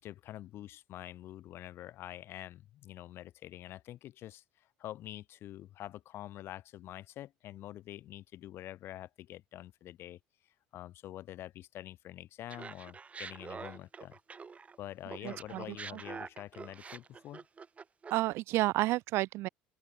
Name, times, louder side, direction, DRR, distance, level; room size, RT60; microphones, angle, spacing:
voice 1, 0.0-10.2 10.7-14.2 14.8-17.5, left 13 dB, 55° left, 5.3 m, -46 dB
Laughter, 12.5-14.8 15.1-18.3, right 5 dB, 30° right, 1.3 m, -46 dB
voice 2, 15.2-15.6 15.9-16.0 18.1-19.5, right 18 dB, 65° right, 0.5 m, -31 dB
open air
hypercardioid pair, 75°, 5 cm